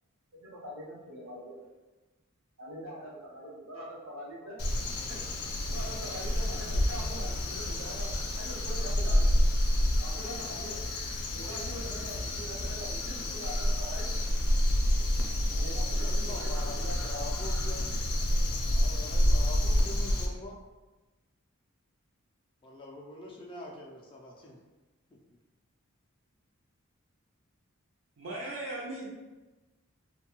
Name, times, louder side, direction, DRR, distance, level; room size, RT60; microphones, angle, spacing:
voice 1, 0.3-1.6 2.6-4.6 5.1-5.2 5.7-9.3 10.0-10.8 11.3-14.1 15.5-17.2, equal, 80° right, -5 dB, 0.9 m, -43 dB
Crow, 4.6-20.3, left 1 dB, 90° left, 0.5 m, -29 dB
voice 2, 16.0-17.9 18.7-20.6 22.6-24.6, left 2 dB, 25° left, -2 dB, 0.3 m, -44 dB
voice 3, 28.2-29.1, right 2 dB, 60° right, -5 dB, 0.4 m, -37 dB
2.6 x 2.2 x 2.9 m, 1.2 s
head